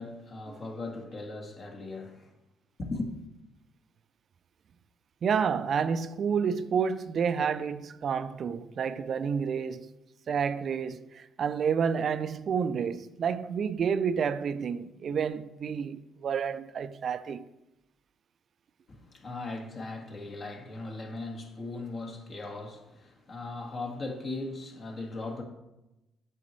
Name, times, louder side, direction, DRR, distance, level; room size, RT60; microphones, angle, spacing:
voice 1, 0.0-2.3 2.8-3.1 18.9-25.4, left 2 dB, 50° left, 1.7 m, -38 dB
voice 2, 5.2-9.9 10.3-17.4, right 6 dB, 55° right, 0.4 m, -29 dB
8.7 x 6.3 x 3.2 m
hypercardioid pair, 60°, 0 cm